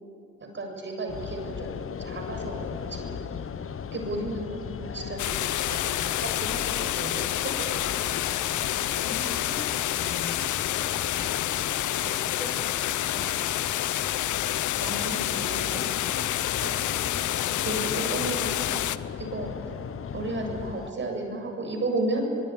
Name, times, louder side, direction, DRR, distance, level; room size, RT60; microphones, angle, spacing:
voice 1, 0.5-3.2 3.9-7.7 14.8-15.9 16.6-16.7 17.6-18.9 19.2-19.5 20.1-22.3, right 2 dB, 40° right, 2 dB, 7.4 m, -33 dB
sound 1, 1.1-20.9, left 7 dB, 45° left, 1.2 m, -37 dB
voice 2, 3.3-3.6 7.6-13.6, equal, 5° right, 0 dB, 5.4 m, -45 dB
sound 2, 5.2-19.0, left 13 dB, 75° left, 0.9 m, -28 dB
24.5 x 22.5 x 10.0 m, 2.7 s
cardioid pair, 90°, 30 cm